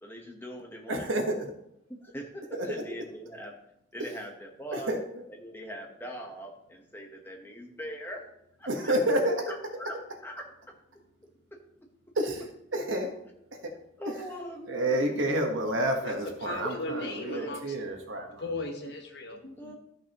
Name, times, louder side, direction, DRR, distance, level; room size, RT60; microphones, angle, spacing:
voice 1, 0.0-1.4 1.9-3.6 3.9-4.9 5.4-8.2 8.6-8.9 9.5-10.0 10.2-10.4 11.5-11.6 12.7-12.8 13.5-13.7 14.0-15.2 17.3-17.7 19.6-19.7, equal, 10° left, 1 dB, 1.1 m, -42 dB
voice 2, 0.9-1.5 2.5-2.8 4.7-5.2 8.7-9.5 12.1-12.4 12.7-13.1 13.6-13.7 14.1-14.2 14.7-18.4, right 1 dB, 80° right, 3 dB, 1.4 m, -29 dB
voice 3, 16.0-17.7 18.4-19.7, left 2 dB, 55° left, 3 dB, 1.2 m, -37 dB
13.0 x 5.9 x 3.0 m, 0.79 s
head